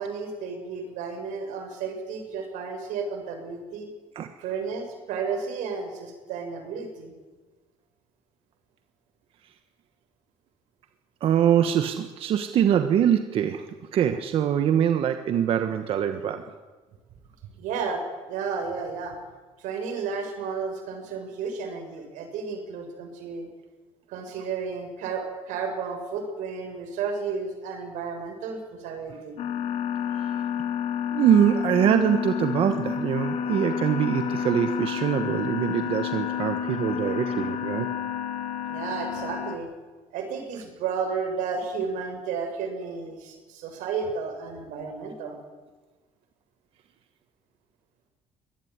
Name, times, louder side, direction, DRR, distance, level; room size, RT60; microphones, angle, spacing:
voice 1, 0.0-3.9 4.4-7.1 17.6-19.2 19.6-23.5 24.1-29.4 38.7-39.7 40.1-45.4, right 5 dB, 85° right, 5 dB, 6.8 m, -32 dB
voice 2, 11.2-16.4 30.1-30.4 31.1-37.9, right 9 dB, 45° right, 8 dB, 1.3 m, -23 dB
sound 1, 29.4-39.6, left 8 dB, 55° left, 2.6 m, -30 dB
23.5 x 18.5 x 9.7 m, 1.3 s
cardioid pair, 180°, 13 cm